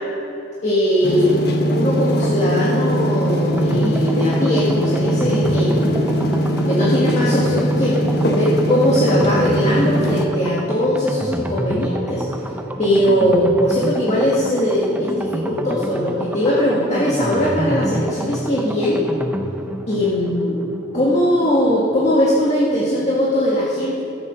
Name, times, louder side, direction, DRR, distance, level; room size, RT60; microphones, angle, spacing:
voice 1, 0.6-1.4 1.7-6.1 6.6-12.2 12.8-19.1 19.9-20.6 20.9-24.0, equal, 40° left, -6 dB, 1.7 m, -20 dB
sound 1, 1.0-10.3, equal, 60° left, 1.2 m, -20 dB
sound 2, 3.6-22.2 22.5-22.6 22.8-22.9, right 1 dB, 10° right, 0.5 m, -28 dB
13.5 x 8.9 x 5.4 m, 2.9 s
head